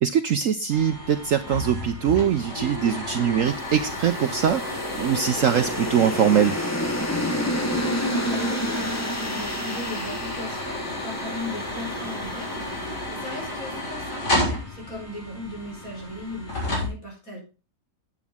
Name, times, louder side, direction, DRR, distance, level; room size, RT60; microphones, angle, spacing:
voice 1, 0.0-6.5, right 8 dB, 65° right, 9 dB, 0.9 m, -22 dB
sound 1, 0.7-16.9, left 1 dB, 70° left, 4.3 m, -32 dB
sound 2, 3.5-13.8, left 1 dB, 15° left, 0.8 m, -30 dB
voice 2, 7.7-17.4, left 2 dB, 50° left, 0 dB, 5.0 m, -37 dB
9.5 x 8.3 x 3.5 m, 0.33 s
omnidirectional pair, 1.8 m